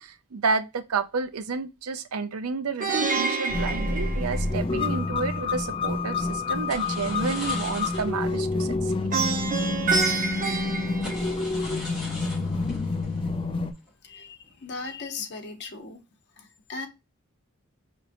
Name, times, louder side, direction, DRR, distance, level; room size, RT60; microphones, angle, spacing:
voice 1, 0.0-9.5, right 4 dB, 90° right, 0.5 m, -30 dB
Plucked string instrument, 2.8-5.0 9.1-11.7, right 4 dB, 40° right, 0.8 m, -28 dB
sound 1, 3.5-13.7, left 3 dB, 25° left, 0.3 m, -28 dB
sound 2, 4.2-5.0 6.7-8.5 8.7-8.9 9.3-9.4 10.1-10.2 10.9-14.1 14.4-14.8, left 1 dB, ahead, 2.4 m, -41 dB
voice 2, 14.0-16.0 16.4-16.9, left 4 dB, 50° left, 0.8 m, -37 dB
4.8 x 3.0 x 2.5 m
head